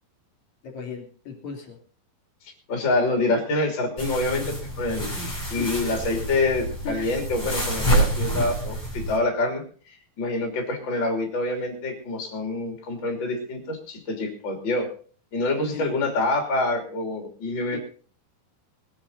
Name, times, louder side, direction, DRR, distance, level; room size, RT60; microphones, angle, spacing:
voice 1, 0.6-1.8 5.2-5.7 6.8-7.2 15.7-15.9 17.7-17.8, left 5 dB, 55° left, 1 dB, 4.5 m, -36 dB
voice 2, 2.7-5.1 5.5-14.9 15.3-17.8, left 2 dB, 30° left, 3 dB, 3.5 m, -26 dB
sound 1, 4.0-9.2, right 1 dB, 5° left, 6.9 m, -27 dB
21.0 x 10.5 x 4.0 m, 0.40 s
omnidirectional pair, 4.2 m